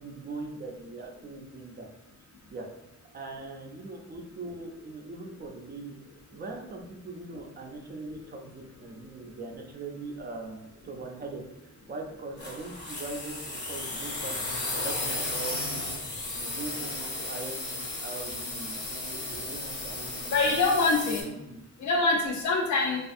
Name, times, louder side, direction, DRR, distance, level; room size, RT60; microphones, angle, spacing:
voice 1, 0.0-1.9 2.5-2.7 3.1-5.9 6.3-11.4 11.9-15.9 16.3-20.5 21.2-21.6, right 3 dB, 35° right, 1 dB, 0.4 m, -41 dB
sound 1, 12.4-21.2, left 2 dB, 40° left, 0.6 m, -34 dB
voice 2, 20.3-21.3 21.8-23.0, left 3 dB, 75° left, 1 dB, 0.6 m, -24 dB
2.5 x 2.4 x 2.5 m, 0.90 s
wide cardioid pair, 165°, 29 cm